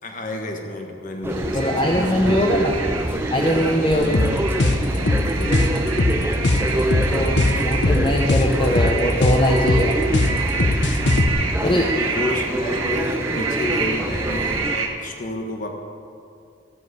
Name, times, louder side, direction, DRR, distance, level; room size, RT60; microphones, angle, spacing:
voice 1, 0.0-2.9 3.9-4.4 4.9-5.7 6.5-7.8 11.6-15.7, left 1 dB, 40° left, 3 dB, 1.4 m, -32 dB
sound 1, 1.2-14.8, right 1 dB, 10° right, 0.5 m, -26 dB
sound 2, 1.3-14.9, right 4 dB, 85° right, 1.4 m, -29 dB
voice 2, 1.5-2.7 3.3-4.1 7.1-10.0 11.6-11.9, equal, 25° left, -1 dB, 0.8 m, -21 dB
sound 3, 3.9-11.3, left 2 dB, 60° left, 0.8 m, -20 dB
14.0 x 7.1 x 8.2 m, 2.5 s
head